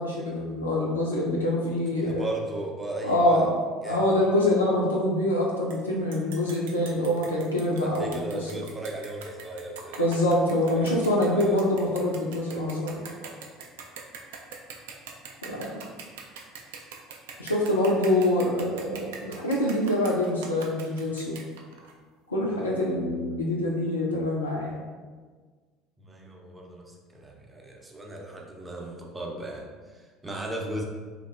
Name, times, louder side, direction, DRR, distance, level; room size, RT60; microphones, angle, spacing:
voice 1, 0.0-2.3 3.0-3.5 3.9-8.4 10.0-13.0 15.4-15.7 17.4-21.4 22.3-24.8, left 1 dB, 90° left, -4 dB, 0.3 m, -25 dB
voice 2, 2.0-3.5 3.8-4.1 6.9-7.0 7.8-10.1 10.7-11.0 11.4-11.6 11.9-12.0 12.5-12.6 22.5-22.9 26.0-30.8, right 2 dB, 15° right, 0 dB, 0.5 m, -37 dB
sound 1, 5.7-5.8 6.1-21.9, right 5 dB, 70° right, 0.3 m, -43 dB
3.0 x 2.1 x 2.4 m, 1.5 s
figure-of-eight pair, 65°, 0 cm